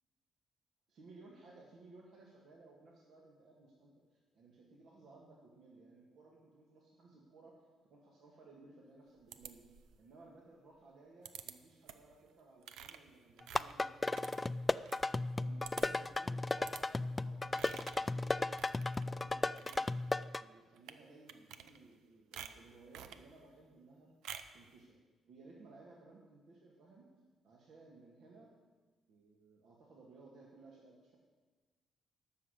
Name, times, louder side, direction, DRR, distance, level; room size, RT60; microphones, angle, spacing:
voice 1, 0.9-9.6 10.0-14.9 15.4-18.5 18.9-19.9 20.4-24.1 24.5-25.0 25.3-27.1 27.4-28.5 29.1-31.2, right 3 dB, 70° right, -3 dB, 1.9 m, -59 dB
sound 1, 9.3-10.0 11.3-11.5 11.9-12.2 12.6-15.0 15.3-15.4 15.6-16.1 16.6-16.8 17.5-18.1 18.5-19.1 19.4-19.9 20.8-21.0 21.3-22.0 22.3-23.3 24.2-24.6, right 9 dB, 85° right, 0.6 m, -50 dB
sound 2, 13.4-20.4, left 2 dB, 20° left, 0.3 m, -35 dB
12.5 x 6.0 x 8.3 m, 1.3 s
cardioid pair, 90°, 0 cm